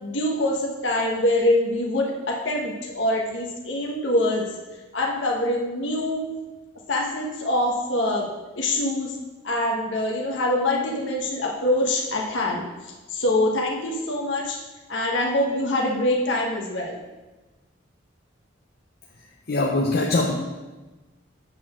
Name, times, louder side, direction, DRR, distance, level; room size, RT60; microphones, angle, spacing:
voice 1, 0.0-4.5 4.9-6.2 6.9-8.3 8.5-9.2 9.4-14.6 14.9-17.0, left 1 dB, 75° left, -1 dB, 1.1 m, -24 dB
voice 2, 19.5-20.4, left 2 dB, 55° left, -1 dB, 0.7 m, -22 dB
8.3 x 4.3 x 6.0 m, 1.2 s
head